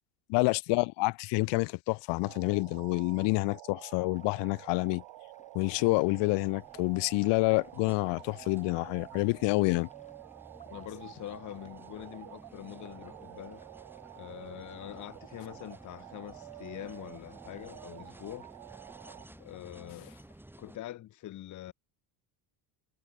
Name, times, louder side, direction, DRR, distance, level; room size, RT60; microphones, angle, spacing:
voice 1, 0.3-5.0 5.5-9.9, left 25 dB, 65° left, 0.8 m, -28 dB
sound 1, 2.2-19.3, right 19 dB, 65° right, 4.9 m, -50 dB
sound 2, 4.1-20.4, left 4 dB, 15° left, 6.7 m, -65 dB
sound 3, 5.8-20.8, right 1 dB, 5° right, 4.0 m, -54 dB
voice 2, 10.7-13.6 14.2-18.5 19.4-20.1 20.6-21.7, left 14 dB, 40° left, 1.2 m, -44 dB
cardioid pair, 155°, 45 cm